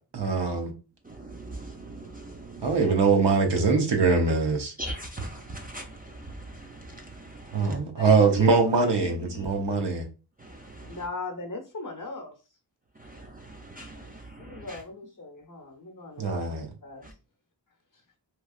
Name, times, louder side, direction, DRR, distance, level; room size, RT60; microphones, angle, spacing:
voice 1, 0.1-0.7 2.6-4.7 7.5-10.0 16.2-16.7, right 4 dB, 65° right, 0.9 m, -23 dB
voice 2, 1.0-2.8 4.8-7.8 10.4-11.0 13.0-14.8 17.0-17.1, right 1 dB, 20° right, 0.5 m, -41 dB
voice 3, 7.9-9.5 10.8-12.3 13.9-16.3 16.8-17.0, left 3 dB, 45° left, 1.0 m, -39 dB
3.2 x 2.3 x 2.4 m
cardioid pair, 55°, 45 cm